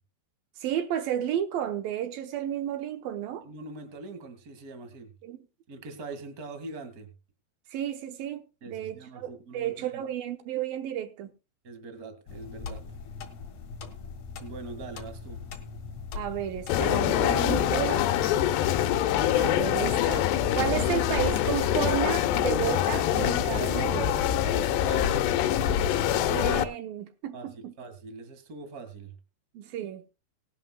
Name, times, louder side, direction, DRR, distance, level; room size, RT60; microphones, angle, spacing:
voice 1, 0.6-3.5 5.2-5.5 7.7-11.3 16.2-18.1 19.3-20.3 20.5-24.3 26.1-27.7 29.5-30.0, right 11 dB, 70° right, 2.4 m, -32 dB
voice 2, 3.4-5.1 5.7-7.1 8.6-10.0 11.6-12.8 14.4-15.4 24.7-25.3 27.3-29.1, right 3 dB, 35° right, 1.4 m, -42 dB
sound 1, 12.3-17.5, left 5 dB, 55° left, 2.0 m, -41 dB
sound 2, 16.7-26.6, left 11 dB, 85° left, 3.0 m, -25 dB
19.5 x 11.5 x 2.3 m
omnidirectional pair, 4.8 m